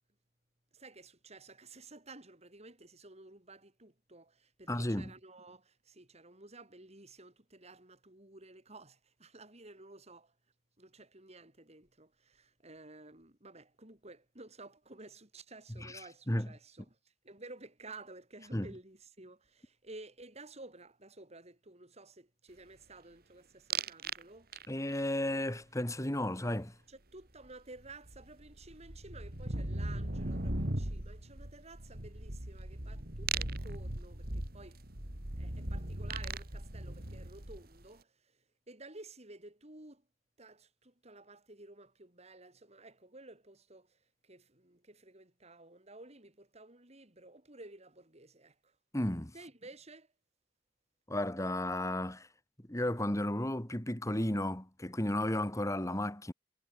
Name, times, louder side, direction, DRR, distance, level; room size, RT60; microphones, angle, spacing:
voice 1, 0.7-10.3 10.8-24.7 26.9-34.8 35.4-38.4 38.7-40.0 40.4-48.7 49.3-50.1, right 2 dB, 35° right, 6.1 m, -53 dB
voice 2, 4.7-5.1 15.8-16.0 16.3-16.5 18.5-18.7 24.7-26.7 48.9-49.3 51.1-52.3 52.7-56.3, left 1 dB, 20° left, 2.3 m, -33 dB
sound 1, 23.7-24.2 24.5-25.0 27.4-27.5 27.8-37.8, right 2 dB, 55° right, 3.5 m, -38 dB
head